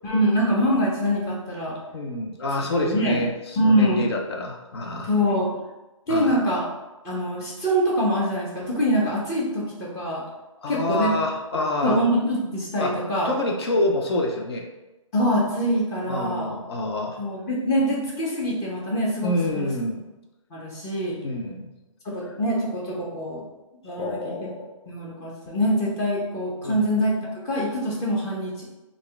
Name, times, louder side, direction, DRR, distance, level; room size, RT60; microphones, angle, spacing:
voice 1, 0.0-1.7 2.8-3.2 3.6-4.0 5.0-5.5 6.1-6.6 7.0-10.2 10.7-11.1 11.5-13.3 15.1-16.5 17.2-19.7 20.5-21.2 22.0-23.4 23.8-24.3 24.9-27.2 27.4-28.6, equal, 20° left, -4 dB, 0.9 m, -24 dB
voice 2, 1.9-5.1 6.1-6.4 10.6-12.0 12.8-12.9 13.2-14.7 16.1-17.2 19.2-20.0 21.2-21.7 24.0-24.7 26.6-26.9, left 1 dB, 50° left, 1 dB, 0.5 m, -27 dB
4.0 x 2.4 x 3.5 m, 1.0 s
hypercardioid pair, 145°, 17 cm